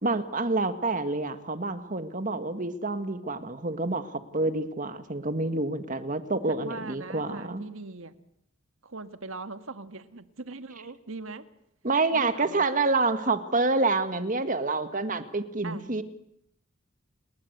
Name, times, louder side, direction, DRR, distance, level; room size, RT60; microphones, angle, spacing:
voice 1, 0.0-7.6 11.8-16.0, right 3 dB, 40° right, 10 dB, 1.7 m, -28 dB
voice 2, 6.5-8.1 8.8-11.4 12.1-12.7 15.6-15.9, right 3 dB, 70° right, 10 dB, 1.7 m, -40 dB
29.5 x 20.5 x 8.1 m, 0.76 s
head